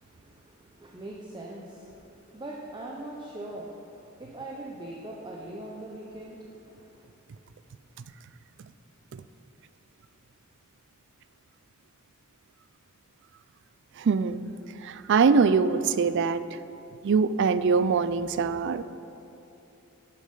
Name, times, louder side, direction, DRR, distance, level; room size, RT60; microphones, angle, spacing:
voice 1, 0.0-7.1, right 1 dB, 20° right, -2 dB, 0.8 m, -41 dB
voice 2, 14.0-14.5 14.8-16.4 17.0-18.8, right 5 dB, 55° right, 13 dB, 0.4 m, -23 dB
12.0 x 6.7 x 5.4 m, 2.9 s
head